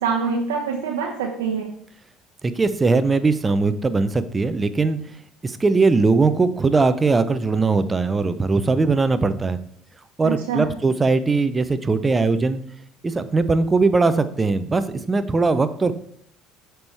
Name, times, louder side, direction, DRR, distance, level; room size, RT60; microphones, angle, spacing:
voice 1, 0.0-1.7 10.2-10.7, right 5 dB, 80° right, -1 dB, 1.0 m, -25 dB
voice 2, 2.4-5.0 5.4-9.6 10.2-12.6 13.0-15.9, right 3 dB, 25° right, 12 dB, 0.7 m, -20 dB
10.5 x 4.6 x 3.4 m, 0.65 s
hypercardioid pair, 60°, 0 cm